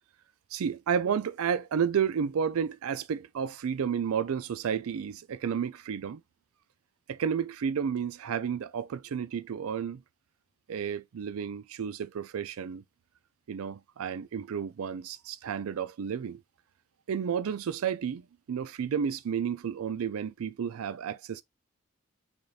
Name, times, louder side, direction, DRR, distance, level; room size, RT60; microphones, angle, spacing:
voice 1, 0.5-6.2 7.1-10.0 10.7-12.8 13.5-16.4 17.1-21.4, right 7 dB, 85° right, 0.4 m, -31 dB
4.9 x 2.4 x 2.7 m
head